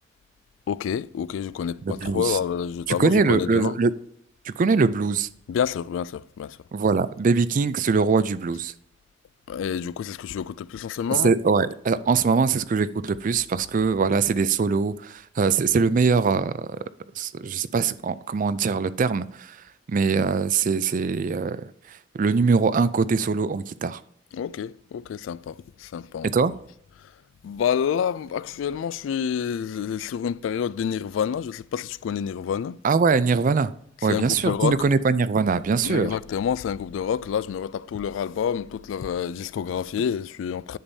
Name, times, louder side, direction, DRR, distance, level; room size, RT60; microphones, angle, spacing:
voice 1, 0.7-3.7 5.5-6.6 9.5-11.3 24.3-26.3 27.4-32.8 34.1-34.7 35.8-40.8, left 8 dB, 80° left, 0.3 m, -28 dB
voice 2, 1.8-2.4 2.9-3.9 4.5-5.3 6.7-8.7 11.1-16.8 17.2-24.0 26.3-26.5 32.8-33.7 34.0-36.2, right 5 dB, 45° right, 0.4 m, -22 dB
10.0 x 7.0 x 2.7 m
head